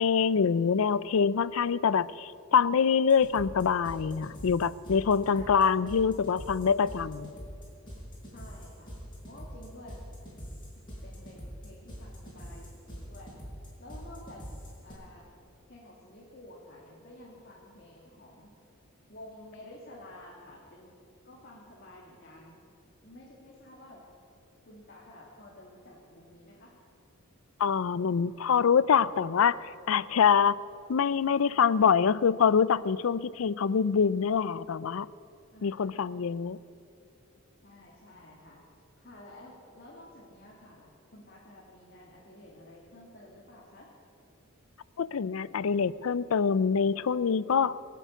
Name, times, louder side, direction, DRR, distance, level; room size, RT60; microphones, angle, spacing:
voice 1, 0.0-7.3 27.6-29.6 29.9-30.6 30.9-35.1 35.6-36.6 45.0-47.8, left 6 dB, 70° left, 19 dB, 0.4 m, -25 dB
vdj italo beat, 3.1-14.9, equal, 25° left, 5.3 m, -44 dB
voice 2, 5.3-5.6 8.3-8.9 9.3-10.0 10.8-13.3 13.6-14.4 14.8-15.3 15.7-18.5 19.1-20.9 21.2-22.6 23.0-24.1 24.7-26.7 35.5-36.2 37.6-43.9, left 1 dB, 50° left, -4 dB, 2.4 m, -51 dB
20.5 x 8.5 x 8.4 m, 2.5 s
head